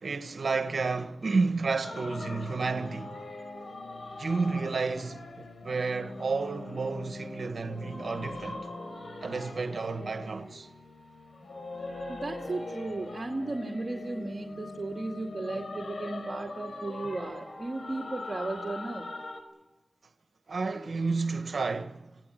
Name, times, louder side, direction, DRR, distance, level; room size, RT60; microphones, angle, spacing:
voice 1, 0.0-3.2 4.2-8.7 9.2-10.7 20.5-22.2, right 4 dB, 70° right, 1.6 m, -31 dB
sound 1, 1.8-19.4, left 2 dB, 65° left, 5.2 m, -41 dB
voice 2, 12.1-19.0, right 2 dB, 45° right, 2.2 m, -35 dB
26.5 x 18.5 x 9.2 m
cardioid pair, 50°, 0 cm